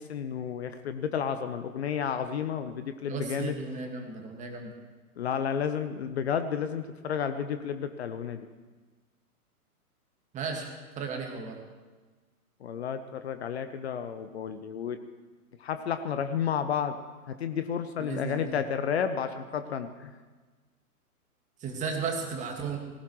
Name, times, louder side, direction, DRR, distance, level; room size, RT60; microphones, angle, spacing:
voice 1, 0.0-3.6 5.2-8.5 12.6-15.0 15.6-17.0 17.3-20.1, left 7 dB, 45° left, 9 dB, 0.9 m, -31 dB
voice 2, 3.1-4.7 10.3-10.7 11.0-11.6 18.0-18.6 21.6-22.8, right 5 dB, 15° right, 3 dB, 1.9 m, -34 dB
19.0 x 17.0 x 3.2 m, 1.3 s
figure-of-eight pair, 125°, 46 cm